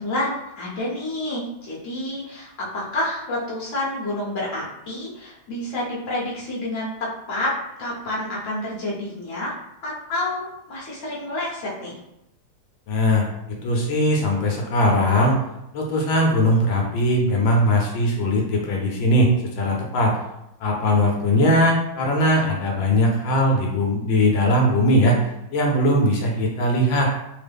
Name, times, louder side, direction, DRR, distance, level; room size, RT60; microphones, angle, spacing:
voice 1, 0.0-7.5 7.8-9.5 9.8-12.0, left 1 dB, 45° left, -6 dB, 1.1 m, -29 dB
voice 2, 12.9-15.4 15.7-20.2 20.6-25.2 25.5-27.1, equal, 70° left, 0 dB, 1.3 m, -20 dB
3.6 x 2.1 x 3.4 m, 0.85 s
omnidirectional pair, 2.4 m